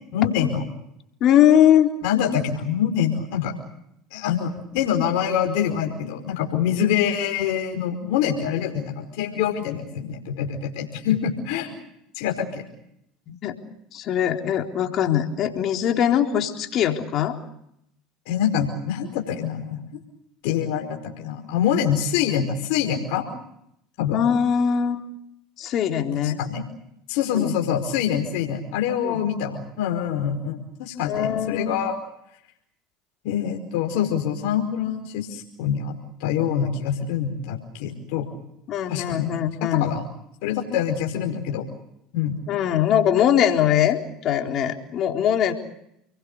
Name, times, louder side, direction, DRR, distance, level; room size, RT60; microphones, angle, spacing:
voice 1, 0.1-0.6 2.0-3.5 4.1-11.7 12.1-12.6 18.2-19.8 20.4-23.3 24.0-24.2 26.2-26.6 27.1-31.9 33.2-35.9 36.2-38.3 38.9-39.3 39.6-40.0 40.4-41.7 42.1-42.4, left 9 dB, 70° left, 2 dB, 5.0 m, -25 dB
voice 2, 1.2-1.9 13.3-13.7 13.9-17.4 24.1-25.0 25.6-26.4 27.3-27.5 29.0-29.2 31.1-31.8 38.7-39.8 42.5-45.5, left 10 dB, 50° left, 3 dB, 3.9 m, -21 dB
29.5 x 23.0 x 6.9 m, 0.77 s
hypercardioid pair, 85°, 0 cm